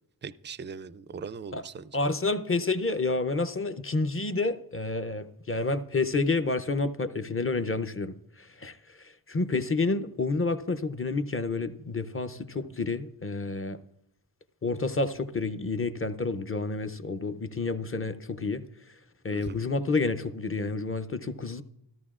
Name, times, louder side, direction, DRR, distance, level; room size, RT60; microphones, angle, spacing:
voice 1, 0.2-1.9 19.3-19.7, right 5 dB, 25° right, 0.3 m, -40 dB
voice 2, 1.9-8.8 9.3-13.8 14.6-18.6 19.2-21.6, left 3 dB, 30° left, 0.6 m, -29 dB
14.0 x 13.5 x 2.4 m
wide cardioid pair, 70°, 45 cm